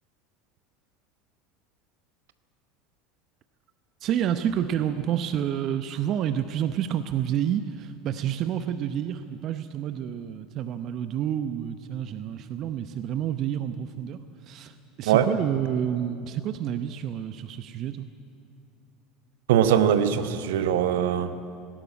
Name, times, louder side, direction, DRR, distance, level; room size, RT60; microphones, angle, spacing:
voice 1, 4.0-18.1, right 10 dB, 45° right, 11 dB, 0.8 m, -29 dB
voice 2, 19.5-21.3, right 9 dB, 70° right, 11 dB, 1.0 m, -21 dB
18.0 x 18.0 x 9.5 m, 2.6 s
figure-of-eight pair, 75°, 0 cm